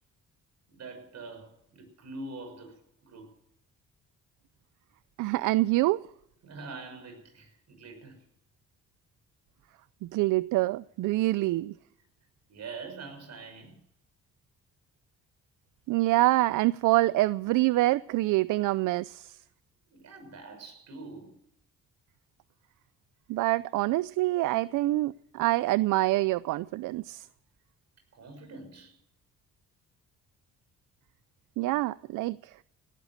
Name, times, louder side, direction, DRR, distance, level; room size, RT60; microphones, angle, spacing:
voice 1, 0.7-3.3 6.4-8.2 12.5-13.8 19.9-21.4 28.1-29.0, right 3 dB, 60° right, 6.3 m, -44 dB
voice 2, 5.2-6.0 10.0-11.7 15.9-19.4 23.3-27.3 31.6-32.5, right 18 dB, 85° right, 0.5 m, -26 dB
18.0 x 12.0 x 6.4 m
cardioid pair, 90°, 30 cm